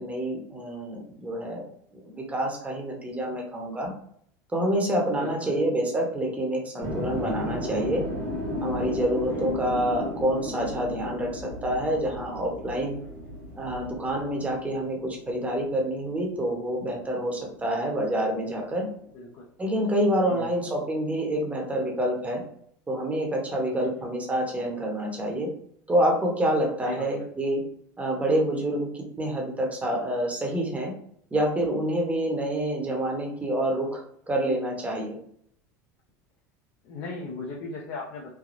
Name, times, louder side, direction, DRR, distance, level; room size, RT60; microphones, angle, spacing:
voice 1, 0.0-1.6 1.9-3.9 4.5-8.0 8.6-13.0 13.6-18.9 19.6-22.4 22.9-25.5 25.9-27.6 28.0-28.9 29.2-30.9 31.3-34.0 34.3-35.2, right 1 dB, 15° right, -1 dB, 0.9 m, -27 dB
voice 2, 5.2-5.6 9.3-9.7 13.3-13.4 17.6-17.7 19.1-19.5 20.3-20.5 23.7-23.9 26.8-27.1 36.8-38.3, left 2 dB, 55° left, -3 dB, 0.7 m, -38 dB
sound 1, 6.8-16.9 17.2-18.8, left 1 dB, 85° right, 1.3 m, -35 dB
3.3 x 2.2 x 2.5 m, 0.66 s
hypercardioid pair, 100°, 9 cm